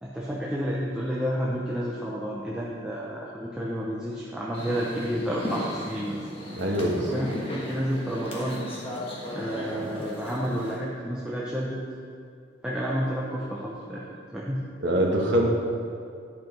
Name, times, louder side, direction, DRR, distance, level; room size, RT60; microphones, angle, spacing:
voice 1, 0.0-6.2 7.0-8.6 9.3-11.8 12.6-14.0 14.3-14.7, equal, 5° right, -6 dB, 0.7 m, -30 dB
sound 1, 4.5-10.8, left 1 dB, 30° left, 1.5 m, -36 dB
voice 2, 6.6-7.1 14.8-15.5, right 1 dB, 60° right, -1 dB, 1.3 m, -23 dB
10.5 x 5.0 x 5.3 m, 2.4 s
head